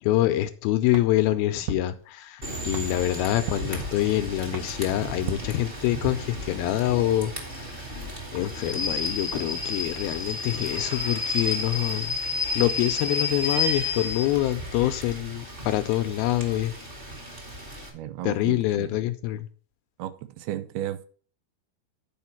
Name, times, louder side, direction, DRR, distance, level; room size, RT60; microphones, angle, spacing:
voice 1, 0.0-7.8 8.3-12.2 12.6-16.7 18.2-19.5, left 15 dB, 80° left, 2.3 m, -26 dB
sound 1, 0.9-6.2, right 6 dB, 70° right, 2.8 m, -40 dB
Rain / Train, 2.4-17.9, left 2 dB, 20° right, 1.5 m, -32 dB
voice 2, 17.9-19.0 20.0-21.1, right 12 dB, 85° right, 2.7 m, -34 dB
10.5 x 5.0 x 5.7 m
omnidirectional pair, 4.6 m